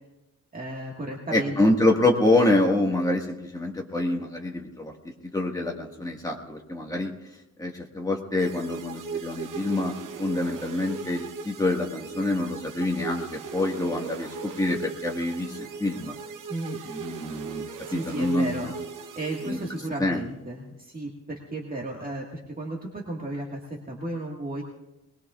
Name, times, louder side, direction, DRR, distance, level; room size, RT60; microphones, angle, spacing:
voice 1, 0.5-1.6 16.5-16.8 17.9-18.7 19.2-24.6, right 2 dB, 25° right, -2 dB, 1.7 m, -34 dB
voice 2, 1.3-4.9 5.3-7.1 7.6-16.1 16.9-18.7 19.4-19.6 20.0-20.2, left 2 dB, 10° left, 0 dB, 1.7 m, -26 dB
sound 1, 8.4-20.2, right 5 dB, 75° right, 0.9 m, -39 dB
22.0 x 20.5 x 2.5 m, 0.97 s
wide cardioid pair, 160°, 32 cm